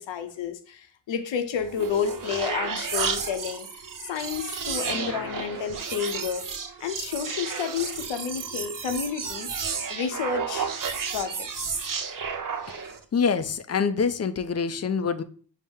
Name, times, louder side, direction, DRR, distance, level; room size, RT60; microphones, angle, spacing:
voice 1, 0.0-6.5 6.8-9.5 9.9-10.7 11.1-11.8, left 7 dB, 85° left, 0.6 m, -31 dB
sound 1, 1.6-13.0, right 6 dB, 45° right, 0.7 m, -32 dB
voice 2, 4.8-5.6 12.7-15.2, left 6 dB, 35° left, 0.4 m, -27 dB
5.3 x 2.1 x 3.5 m
cardioid pair, 45°, 44 cm